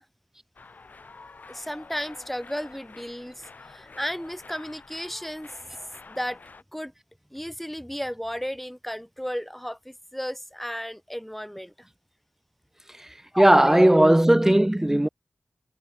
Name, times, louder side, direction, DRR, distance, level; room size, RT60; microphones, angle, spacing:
sound 1, 0.6-6.6, left 4 dB, 65° left, 7.8 m, -48 dB
voice 1, 1.5-5.5 6.1-6.4 6.7-6.9 7.3-11.9 13.3-14.0, equal, 5° left, 5.3 m, -34 dB
voice 2, 13.4-15.1, right 1 dB, 15° right, 0.6 m, -17 dB
wide cardioid pair, 60°, 3 cm